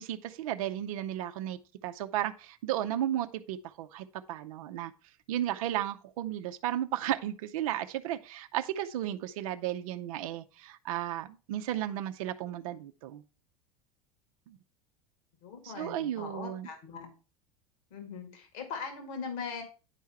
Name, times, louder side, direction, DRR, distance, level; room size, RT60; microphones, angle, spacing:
voice 1, 0.0-1.6 1.8-4.9 5.3-13.2 14.5-14.6 15.6-16.7, right 12 dB, 65° right, 0.6 m, -34 dB
voice 2, 15.4-17.1 17.9-19.6, left 5 dB, 60° left, 2.1 m, -40 dB
9.9 x 4.6 x 4.4 m
hypercardioid pair, 80°, 19 cm